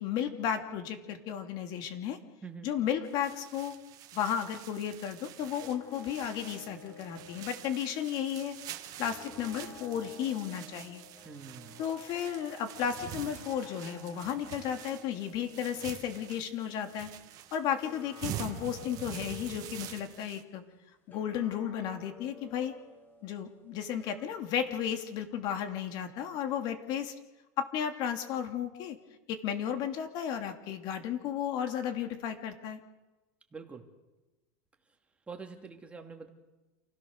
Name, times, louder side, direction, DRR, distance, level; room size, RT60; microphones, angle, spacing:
voice 1, 0.0-2.2 2.6-3.7 4.1-8.6 9.0-11.1 11.8-17.1 17.5-20.6 21.1-22.7 23.2-27.1 27.6-29.0 29.3-32.8, left 9 dB, 50° left, 6 dB, 2.8 m, -34 dB
voice 2, 2.4-2.8 11.2-11.8 33.5-33.9 35.3-36.3, right 5 dB, 15° right, 3 dB, 2.7 m, -45 dB
sound 1, 3.0-20.4, right 11 dB, 40° right, 1.8 m, -46 dB
sound 2, 5.4-8.4 9.0-17.4 17.8-20.3 21.1-24.2, left 4 dB, 20° left, 3.5 m, -53 dB
28.5 x 16.5 x 6.7 m, 1.1 s
supercardioid pair, 135°, 9 cm